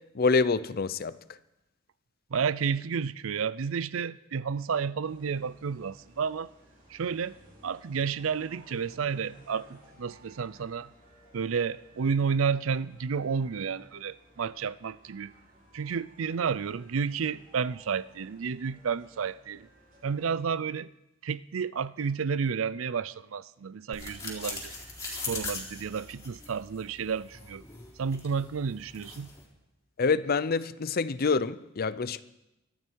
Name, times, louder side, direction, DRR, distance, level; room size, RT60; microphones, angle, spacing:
voice 1, 0.1-1.2 30.0-32.2, left 4 dB, 50° left, 0.6 m, -26 dB
voice 2, 2.3-6.5 6.9-7.4 7.6-10.9 11.3-15.3 15.7-19.7 20.0-20.9 21.2-24.7 25.1-27.6 28.0-29.3, right 6 dB, 80° right, 0.5 m, -31 dB
sound 1, 5.0-20.2, right 1 dB, 45° right, 7.6 m, -58 dB
sound 2, 23.9-29.5, left 3 dB, 15° left, 3.7 m, -41 dB
24.0 x 12.5 x 4.6 m
head